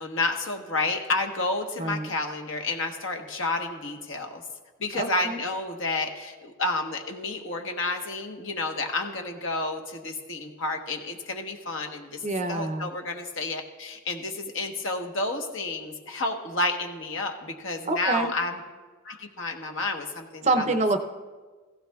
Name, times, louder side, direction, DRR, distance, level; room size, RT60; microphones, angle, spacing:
voice 1, 0.0-4.4 4.8-12.2 12.5-18.6 19.0-20.7, left 2 dB, 55° left, 4 dB, 1.1 m, -30 dB
voice 2, 1.8-2.1 4.9-5.4 12.2-12.9 17.9-18.3 20.4-21.0, right 2 dB, 30° right, 7 dB, 0.6 m, -26 dB
16.0 x 15.0 x 2.3 m, 1.4 s
head